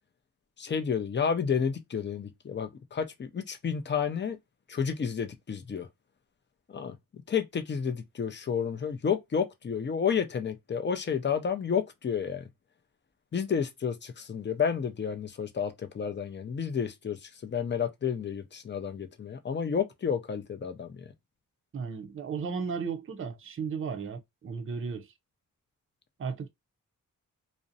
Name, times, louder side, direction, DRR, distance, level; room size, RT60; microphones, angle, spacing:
voice 1, 0.6-4.4 4.7-5.9 6.7-12.4 13.3-17.2 17.4-20.9, left 7 dB, 35° left, 0.4 m, -31 dB
voice 2, 21.7-25.1 26.2-26.5, right 5 dB, 40° right, 0.4 m, -35 dB
2.4 x 2.0 x 2.5 m
wide cardioid pair, 105°, 34 cm